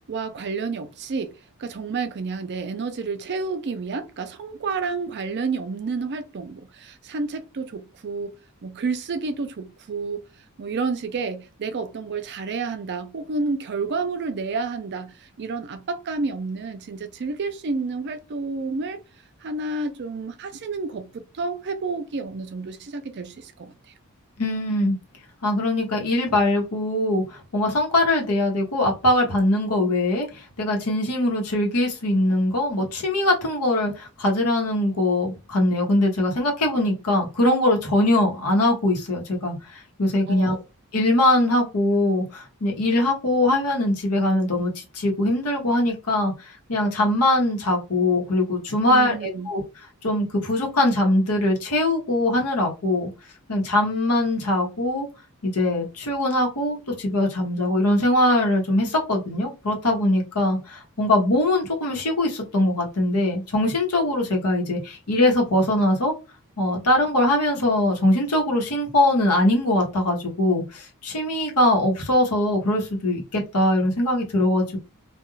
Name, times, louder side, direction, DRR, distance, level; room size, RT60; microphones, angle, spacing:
voice 1, 0.1-8.3 8.6-10.2 10.6-19.0 19.4-21.1 21.3-23.7 40.3-40.6 48.9-49.5, right 4 dB, 50° right, 0.4 m, -30 dB
voice 2, 24.4-25.0 25.4-40.6 40.9-49.6 50.0-53.1 53.5-55.1 55.4-66.1 66.6-74.8, left 1 dB, 90° left, 1.0 m, -22 dB
2.3 x 2.2 x 3.1 m
head